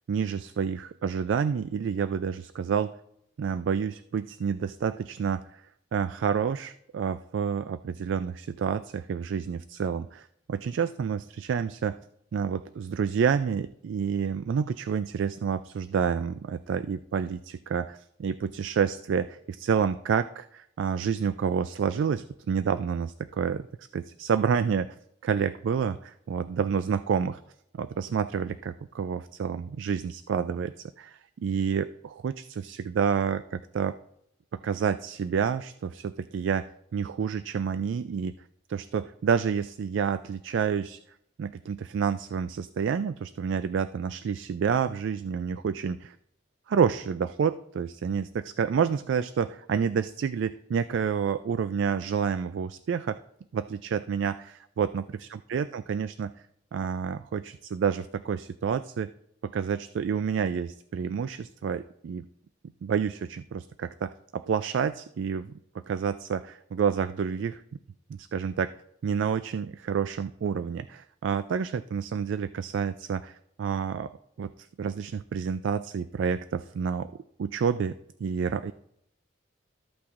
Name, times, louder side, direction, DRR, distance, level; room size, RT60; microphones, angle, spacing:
voice 1, 0.1-3.0 3.4-5.4 5.9-12.0 12.3-23.7 23.9-24.9 25.2-27.4 27.7-34.0 34.5-38.3 38.7-41.0 41.4-46.2 46.7-53.2 53.5-56.3 56.7-59.1 59.4-62.2 62.8-65.5 65.9-67.6 68.1-68.7 69.0-74.1 74.4-77.1 77.4-78.0 78.2-78.7, right 6 dB, 75° right, 12 dB, 0.3 m, -29 dB
13.5 x 8.4 x 2.5 m, 0.74 s
head